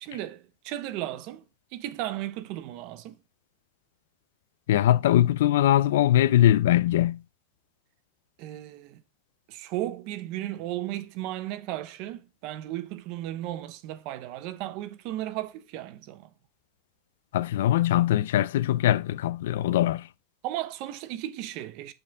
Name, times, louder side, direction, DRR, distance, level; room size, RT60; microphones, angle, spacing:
voice 1, 0.0-1.4 1.7-3.2 8.4-9.0 9.5-16.3 20.4-21.9, right 14 dB, 45° right, 0.7 m, -35 dB
voice 2, 4.7-7.2 17.3-20.1, left 12 dB, 90° left, 0.4 m, -21 dB
7.7 x 4.2 x 3.5 m
supercardioid pair, 165°, 0 cm